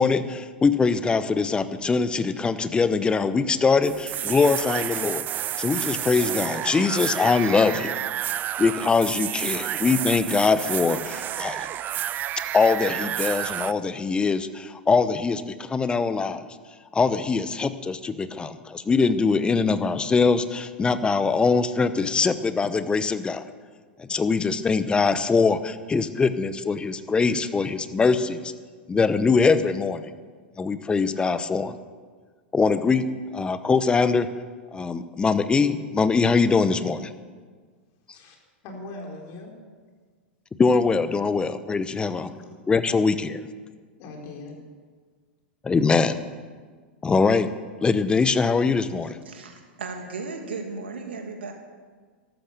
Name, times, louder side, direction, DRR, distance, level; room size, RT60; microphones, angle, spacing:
voice 1, 0.0-5.2 5.6-8.0 8.6-11.7 12.5-16.5 16.9-23.4 24.0-28.5 28.9-30.0 30.6-31.8 32.5-33.0 33.3-34.3 34.7-37.1 40.6-42.3 42.7-43.4 45.6-46.2 47.0-47.5 47.8-49.2, left 4 dB, 15° left, 0.9 m, -22 dB
sound 1, 3.8-13.7, right 12 dB, 35° right, 0.5 m, -30 dB
voice 2, 38.6-39.5 42.0-42.6 44.0-44.6, left 2 dB, 50° left, 4.1 m, -40 dB
voice 3, 49.2-51.5, right 4 dB, 80° right, 2.5 m, -35 dB
13.5 x 12.5 x 6.8 m
hypercardioid pair, 100°, 6 cm